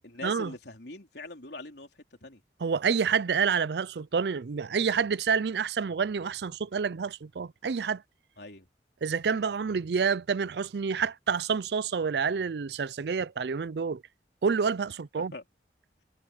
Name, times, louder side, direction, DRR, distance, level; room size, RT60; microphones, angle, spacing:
voice 1, 0.0-2.4 8.4-8.7 15.1-15.5, left 2 dB, 70° left, 3.7 m, -43 dB
voice 2, 2.6-8.0 9.0-14.0 14.4-15.3, right 6 dB, 70° right, 0.5 m, -28 dB
head